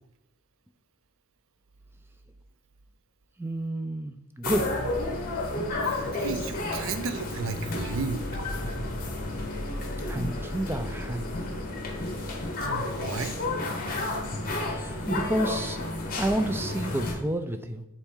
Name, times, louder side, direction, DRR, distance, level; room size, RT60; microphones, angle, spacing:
voice 1, 3.4-4.7 10.0-11.3 14.7-15.9 16.2-17.9, right 1 dB, 10° right, 7 dB, 0.4 m, -30 dB
sound 1, 4.4-17.1, left 2 dB, 40° left, 1.1 m, -31 dB
voice 2, 5.8-8.4 12.6-13.4, right 4 dB, 60° right, 9 dB, 0.5 m, -34 dB
7.2 x 4.3 x 3.7 m, 0.88 s
head